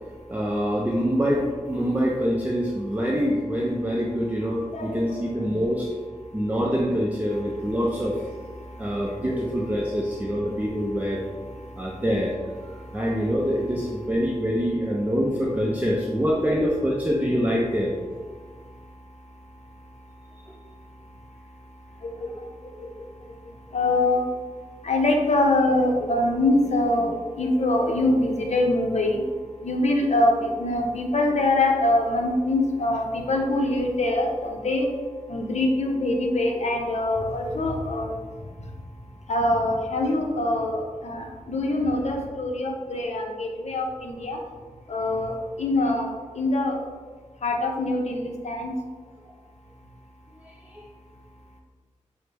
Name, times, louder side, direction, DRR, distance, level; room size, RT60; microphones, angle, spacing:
voice 1, 0.3-5.9 6.3-8.3 8.8-11.2 11.8-12.4 12.9-17.9 22.7-22.8 50.4-50.8, equal, 10° right, -4 dB, 0.5 m, -25 dB
voice 2, 23.7-24.2 24.8-29.2 29.6-34.9 35.3-38.1 39.3-44.4 44.9-46.1 46.4-46.8 47.4-48.7, left 2 dB, 55° left, 1 dB, 0.7 m, -24 dB
5.6 x 2.1 x 3.3 m, 1.5 s
wide cardioid pair, 70°, 13 cm